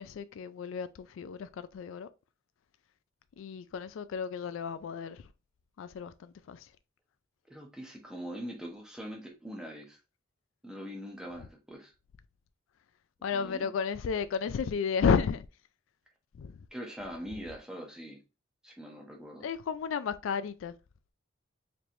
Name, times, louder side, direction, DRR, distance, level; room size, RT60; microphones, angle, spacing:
voice 1, 0.0-2.1 3.4-5.2 5.8-6.7 13.2-15.5 16.4-16.6 19.4-20.7, left 6 dB, 80° left, 0.3 m, -32 dB
voice 2, 7.5-10.0 10.6-11.9 13.3-13.7 16.7-18.2 18.6-19.5, equal, 5° right, 1.0 m, -42 dB
4.4 x 3.2 x 2.6 m
head